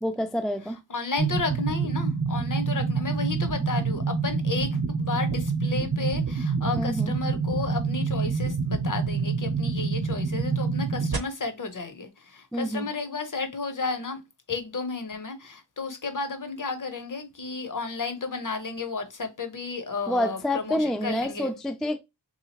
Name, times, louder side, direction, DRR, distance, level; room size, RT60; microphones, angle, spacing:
voice 1, 0.0-0.8 6.7-7.1 12.5-12.9 20.1-22.0, left 1 dB, ahead, 0.3 m, -28 dB
voice 2, 0.7-14.2 14.5-21.5, left 4 dB, 50° left, 0.7 m, -33 dB
sound 1, 1.2-11.2, right 4 dB, 60° right, 0.8 m, -27 dB
3.5 x 2.8 x 2.8 m
wide cardioid pair, 75°, 42 cm